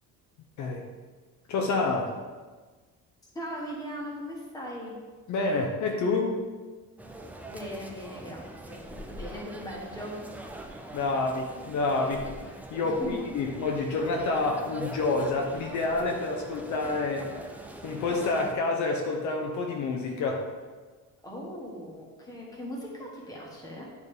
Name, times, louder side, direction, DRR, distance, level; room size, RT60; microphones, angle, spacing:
voice 1, 1.5-2.2 5.3-6.4 10.9-17.3 17.8-20.5, left 3 dB, 60° left, 1 dB, 0.9 m, -28 dB
voice 2, 3.3-4.9 7.5-10.2 13.0-13.2 21.2-23.8, equal, 10° left, -3 dB, 1.5 m, -39 dB
sound 1, 7.0-18.5, right 1 dB, 5° right, 0.3 m, -43 dB
10.5 x 4.2 x 3.6 m, 1.4 s
cardioid pair, 175°, 33 cm